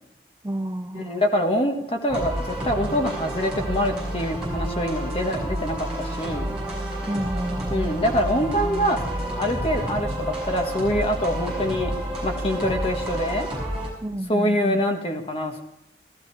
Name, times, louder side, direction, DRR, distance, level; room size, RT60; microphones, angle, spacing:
voice 1, 0.4-1.2 7.1-8.0 14.0-14.8, right 1 dB, 20° right, 8 dB, 0.5 m, -30 dB
voice 2, 0.9-6.5 7.7-9.0 9.4-11.9 12.2-13.5 14.3-15.6, equal, 30° left, 3 dB, 1.6 m, -25 dB
sound 1, 2.1-13.9, right 1 dB, ahead, 6.1 m, -29 dB
16.0 x 13.0 x 4.8 m, 0.81 s
head